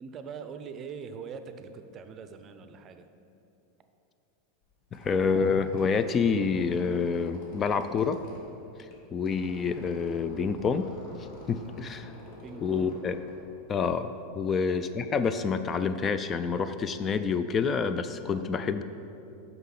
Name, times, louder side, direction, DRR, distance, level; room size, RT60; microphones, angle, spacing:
voice 1, 0.0-3.1 12.4-13.0 14.5-14.6, right 6 dB, 35° right, 9 dB, 0.5 m, -42 dB
Squeak, 4.6-14.2, left 2 dB, 55° left, 1.5 m, -50 dB
voice 2, 4.9-8.2 9.1-10.9 11.5-12.1 12.6-13.1 13.7-18.8, left 5 dB, 30° left, 10 dB, 0.3 m, -28 dB
5.6 x 5.6 x 5.8 m, 2.8 s
hypercardioid pair, 95°, 0 cm